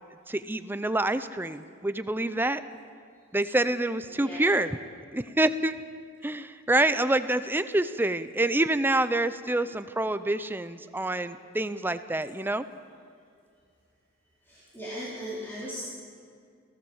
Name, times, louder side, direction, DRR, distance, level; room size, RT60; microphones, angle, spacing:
voice 1, 0.3-2.6 3.3-4.7 5.1-5.7 6.2-12.6, right 2 dB, 10° right, 12 dB, 0.6 m, -27 dB
voice 2, 4.1-4.6 14.4-15.8, equal, 10° left, -8 dB, 4.1 m, -38 dB
29.0 x 16.5 x 7.2 m, 2.3 s
head